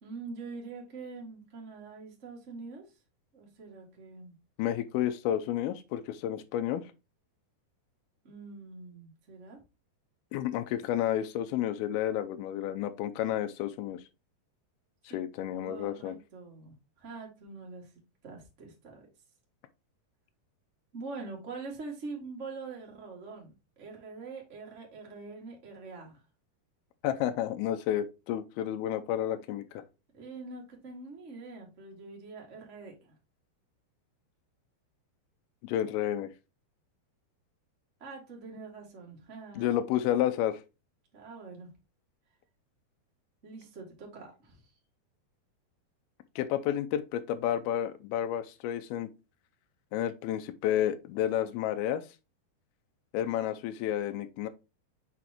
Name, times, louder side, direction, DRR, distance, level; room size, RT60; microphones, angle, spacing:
voice 1, 0.0-2.8 3.3-4.3 8.2-9.6 15.1-15.2 15.6-17.9 18.2-19.0 20.9-26.2 30.1-33.1 38.0-39.8 41.1-41.7 43.4-44.6, right 4 dB, 30° right, 1.3 m, -44 dB
voice 2, 4.6-6.8 10.3-14.0 15.1-16.2 27.0-29.8 35.6-36.3 39.6-40.6 46.4-49.1 49.9-52.1 53.1-54.5, left 11 dB, 85° left, 2.3 m, -31 dB
6.1 x 5.8 x 2.9 m
omnidirectional pair, 4.7 m